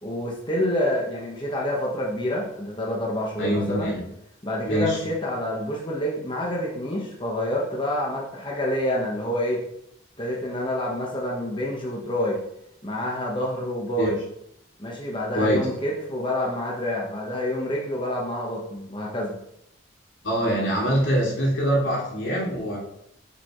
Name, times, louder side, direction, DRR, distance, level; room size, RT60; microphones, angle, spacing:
voice 1, 0.0-4.0 4.4-9.6 10.2-12.4 12.8-14.2 14.8-19.4, left 1 dB, 25° left, -2 dB, 1.4 m, -27 dB
voice 2, 3.4-4.0 4.6-5.0 14.0-14.1 15.3-15.7 20.2-22.8, equal, 80° left, -4 dB, 3.4 m, -24 dB
8.2 x 6.9 x 3.2 m, 0.75 s
head